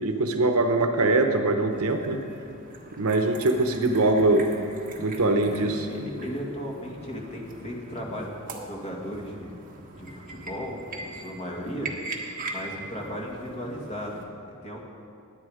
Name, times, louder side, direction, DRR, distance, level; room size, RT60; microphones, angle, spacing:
voice 1, 0.0-2.2 3.0-4.5 5.0-5.9, right 2 dB, 70° right, 6 dB, 0.9 m, -22 dB
sound 1, 1.7-14.2, right 2 dB, 40° right, 1.4 m, -41 dB
voice 2, 5.4-9.6 9.9-11.9 12.5-14.8, equal, 30° left, -1 dB, 2.1 m, -36 dB
20.5 x 8.3 x 4.9 m, 2.5 s
head